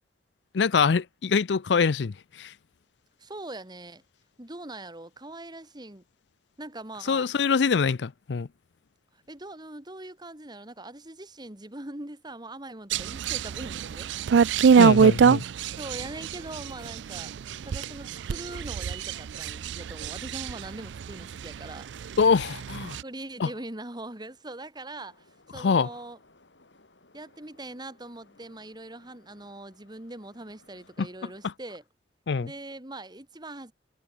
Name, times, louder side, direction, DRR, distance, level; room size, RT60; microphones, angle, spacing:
voice 1, 0.5-2.5 7.1-8.5 14.8-15.4 22.2-23.0 23.4-23.5 25.5-25.9 31.0-31.1 31.4-31.5 32.3-32.5, left 5 dB, 75° left, 0.5 m, -24 dB
voice 2, 3.2-4.0 4.4-6.0 6.6-7.3 9.1-14.1 15.7-17.3 17.6-21.9 23.0-26.2 27.1-31.8 32.4-33.7, right 2 dB, 25° right, 2.6 m, -42 dB
sound 1, 12.9-21.7 22.0-23.0, right 6 dB, 80° right, 0.4 m, -23 dB
Subway metro underground, 25.0-31.4, left 2 dB, 90° left, 4.7 m, -61 dB
head